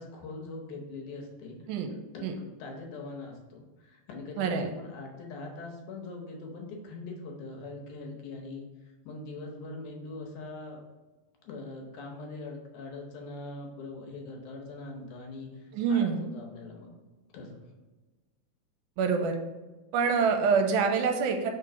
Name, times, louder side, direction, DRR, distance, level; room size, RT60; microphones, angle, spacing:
voice 1, 0.0-1.7 2.1-10.8 11.4-16.9 17.3-17.6, left 3 dB, 75° left, 1 dB, 2.3 m, -42 dB
voice 2, 4.4-4.7 15.7-16.2 19.0-19.4 19.9-21.5, right 5 dB, 80° right, 5 dB, 2.0 m, -26 dB
4.8 x 3.8 x 5.7 m, 1.2 s
omnidirectional pair, 3.7 m